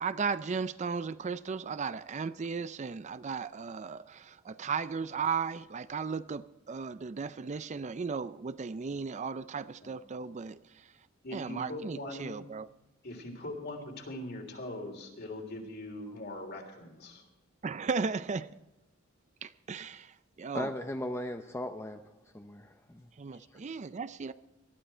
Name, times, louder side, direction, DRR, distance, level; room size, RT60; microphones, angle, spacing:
voice 1, 0.0-10.6 11.3-12.7 17.6-18.5 19.4-20.7 23.2-24.3, right 5 dB, 35° right, 0.4 m, -35 dB
voice 2, 11.2-12.3 13.0-17.2, left 1 dB, 55° left, 3.4 m, -41 dB
voice 3, 20.5-22.0 22.3-23.1, left 1 dB, 15° left, 0.7 m, -37 dB
19.5 x 12.5 x 4.4 m
head